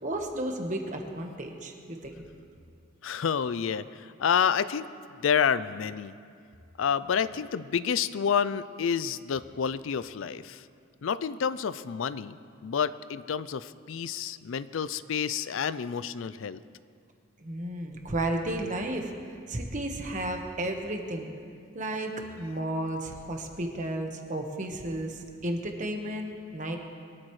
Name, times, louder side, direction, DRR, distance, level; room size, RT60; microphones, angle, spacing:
voice 1, 0.0-2.2 17.4-21.3 21.7-22.1 22.4-26.8, right 1 dB, 40° right, 3 dB, 1.3 m, -33 dB
voice 2, 3.0-4.9 5.2-6.1 6.8-10.7 11.0-12.4 12.6-16.6, left 7 dB, 70° left, 15 dB, 0.4 m, -29 dB
22.5 x 13.5 x 3.2 m, 2.3 s
head